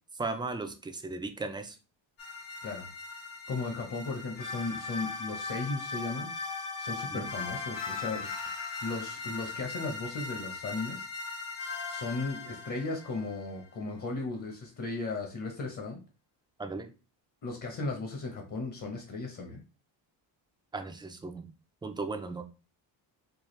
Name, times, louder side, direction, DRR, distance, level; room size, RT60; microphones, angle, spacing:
voice 1, 0.2-1.8 7.1-7.3 16.6-16.9 20.7-21.5 21.8-22.4, right 3 dB, 10° right, 6 dB, 0.4 m, -36 dB
sound 1, 2.2-13.5, left 4 dB, 80° left, 2.2 m, -39 dB
voice 2, 3.5-6.3 6.8-8.3 8.8-11.0 11.9-16.0 17.4-19.6, left 3 dB, 40° left, 2 dB, 1.0 m, -36 dB
4.7 x 2.4 x 3.1 m, 0.32 s
cardioid pair, 120°, 48 cm